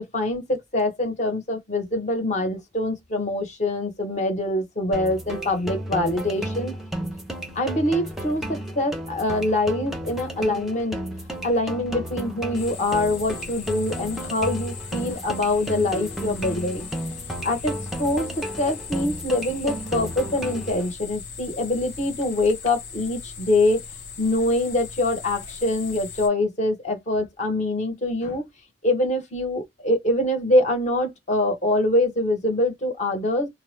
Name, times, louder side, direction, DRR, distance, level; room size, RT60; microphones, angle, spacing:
voice 1, 0.0-6.7 7.5-11.0 11.4-16.9 17.4-23.8 24.2-28.4 28.8-33.5, left 1 dB, 40° left, 0.9 m, -24 dB
sound 1, 4.9-20.9, right 1 dB, ahead, 0.5 m, -33 dB
sound 2, 12.6-26.3, left 5 dB, 70° left, 0.7 m, -39 dB
2.2 x 2.0 x 3.0 m
head